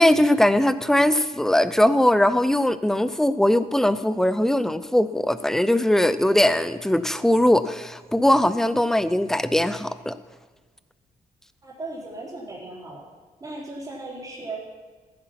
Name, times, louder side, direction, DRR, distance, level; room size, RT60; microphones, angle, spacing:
voice 1, 0.0-10.1, left 1 dB, 5° left, 13 dB, 0.5 m, -20 dB
voice 2, 11.6-13.1 13.4-14.8, right 2 dB, 25° right, -3 dB, 3.7 m, -37 dB
15.0 x 9.6 x 5.8 m, 1.4 s
cardioid pair, 135°, 15 cm